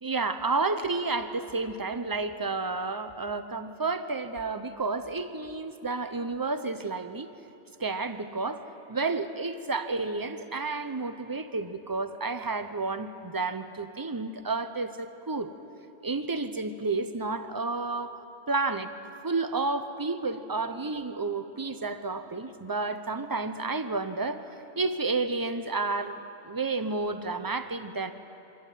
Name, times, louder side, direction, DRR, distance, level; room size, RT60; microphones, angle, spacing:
voice 1, 0.0-7.3 7.8-8.6 8.9-15.5 16.0-18.2 18.5-18.9 19.2-24.4 24.8-28.1, right 3 dB, 20° right, 10 dB, 0.7 m, -31 dB
24.0 x 15.0 x 9.3 m, 2.9 s
omnidirectional pair, 1.3 m